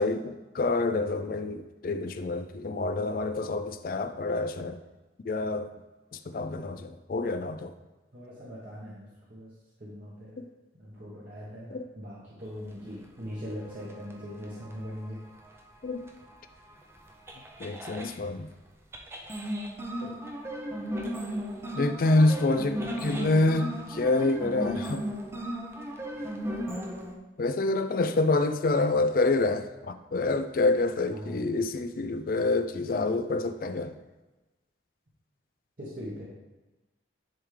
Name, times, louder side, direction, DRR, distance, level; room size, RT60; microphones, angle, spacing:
voice 1, 0.0-4.8 5.2-5.7 6.1-7.7 10.4-10.5 11.7-11.8 15.8-16.0 17.6-18.5 20.0-20.2 21.7-25.0 27.4-33.9, left 2 dB, 50° left, 9 dB, 0.4 m, -27 dB
voice 2, 6.3-6.7 8.1-9.5 9.8-10.4 10.8-15.2 31.1-31.4 35.8-36.2, equal, 50° right, -8 dB, 1.2 m, -41 dB
sound 1, 13.6-18.1 18.9-27.2, equal, 15° right, 0.6 m, -35 dB
10.5 x 3.5 x 3.2 m, 1.1 s
head